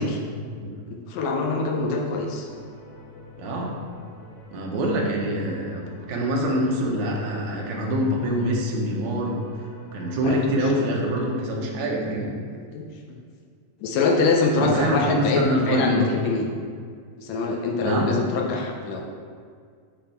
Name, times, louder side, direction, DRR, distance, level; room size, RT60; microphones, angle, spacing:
voice 1, 0.4-0.7 3.4-3.8 4.5-9.5 9.9-12.4 14.5-16.1 17.8-18.2, equal, 70° right, -1 dB, 2.3 m, -25 dB
voice 2, 0.9-2.5 10.2-10.4 12.7-12.8 13.8-16.5 17.2-19.0, left 3 dB, 80° left, 0 dB, 1.6 m, -24 dB
sound 1, 2.2-12.3, left 1 dB, 55° left, 0.7 m, -44 dB
8.9 x 3.7 x 4.2 m, 2.1 s
omnidirectional pair, 3.8 m